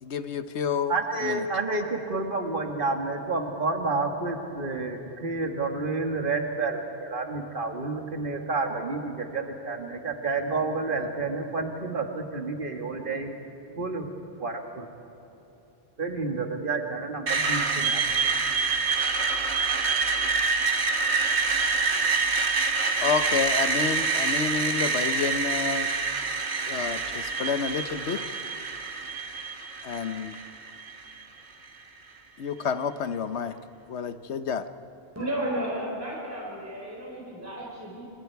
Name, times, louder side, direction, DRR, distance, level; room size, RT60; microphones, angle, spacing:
voice 1, 0.0-0.9 1.2-1.5 23.0-25.9 26.7-28.2 29.8-30.4 32.4-33.6 33.9-34.7, left 6 dB, 80° left, 11 dB, 1.2 m, -29 dB
voice 2, 0.9-13.3 13.8-14.1 14.4-14.9 16.0-18.0, right 3 dB, 50° right, 3 dB, 2.0 m, -30 dB
Screech, 17.3-31.2, right 4 dB, 75° right, 1.8 m, -26 dB
voice 3, 35.2-38.1, right 1 dB, 15° right, -4 dB, 4.1 m, -33 dB
29.0 x 27.5 x 4.7 m, 3.0 s
omnidirectional pair, 1.1 m